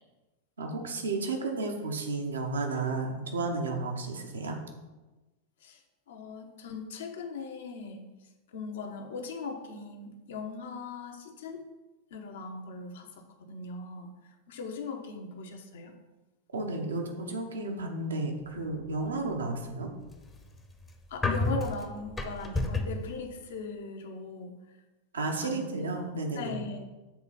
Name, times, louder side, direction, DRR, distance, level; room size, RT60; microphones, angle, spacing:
voice 1, 0.6-4.6 16.5-19.9 25.1-26.6, right 3 dB, 70° right, 3 dB, 1.2 m, -32 dB
voice 2, 6.1-8.0 8.5-11.6 12.1-14.1 14.5-15.9 21.1-24.5 25.4-26.0 26.3-26.8, left 4 dB, 60° left, 4 dB, 1.0 m, -39 dB
sound 1, 19.9-23.1, left 2 dB, 15° left, 0.9 m, -31 dB
7.6 x 4.0 x 5.8 m, 1.1 s
figure-of-eight pair, 90°, 0 cm